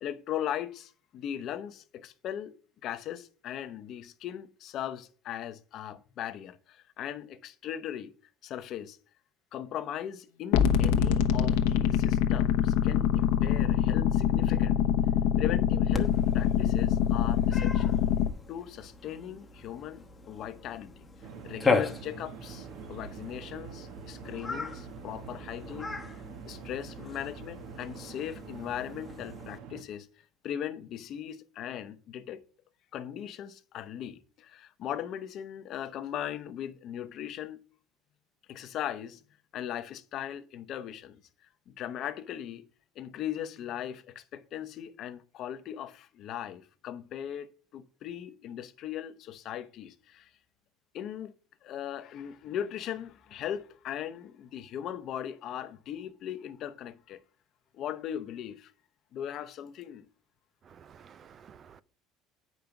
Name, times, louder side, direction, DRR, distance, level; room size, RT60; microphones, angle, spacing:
voice 1, 0.0-2.6 2.8-8.1 8.4-9.0 9.5-14.9 15.4-17.9 18.5-20.9 21.4-26.0 26.5-32.4 32.9-37.6 38.5-39.2 39.5-41.2 41.7-42.6 43.0-50.3 50.9-51.3 51.6-57.2 57.7-58.7 59.1-60.1, left 10 dB, 50° left, 0.8 m, -38 dB
sound 1, 10.5-18.3, left 9 dB, 85° left, 0.9 m, -25 dB
Cat, 15.9-29.6, left 4 dB, 15° left, 1.0 m, -37 dB
sound 2, 21.2-29.8, right 7 dB, 65° right, 1.2 m, -46 dB
voice 2, 60.7-61.8, right 7 dB, 35° right, 0.4 m, -53 dB
9.2 x 5.3 x 5.8 m
cardioid pair, 145°, 0 cm